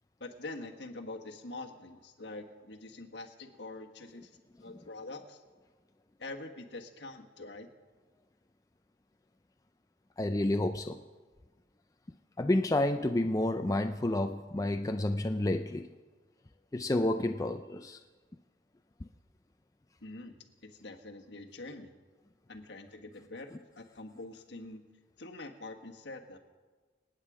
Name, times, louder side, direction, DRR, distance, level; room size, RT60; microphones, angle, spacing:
voice 1, 0.2-4.3 4.6-5.4 6.2-7.7 20.0-20.4 20.6-21.9 22.5-24.8 25.2-26.4, left 2 dB, 65° left, 3 dB, 1.5 m, -45 dB
voice 2, 10.2-11.0 12.4-15.9 16.7-18.0, left 1 dB, 20° left, 6 dB, 0.4 m, -30 dB
27.0 x 9.1 x 5.0 m, 1.4 s
head